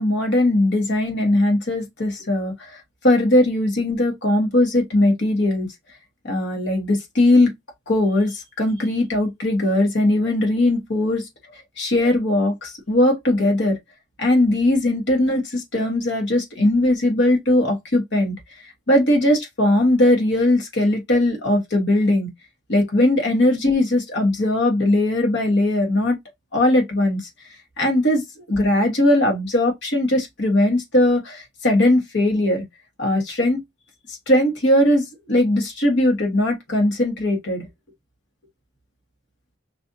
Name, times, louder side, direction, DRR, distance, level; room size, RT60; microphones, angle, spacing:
voice 1, 0.0-5.7 6.2-7.5 7.9-13.8 14.2-22.3 22.7-26.2 26.5-27.3 27.8-32.6 33.0-33.6 34.3-37.7, left 1 dB, 65° left, 1.7 m, -19 dB
5.5 x 2.6 x 2.7 m
head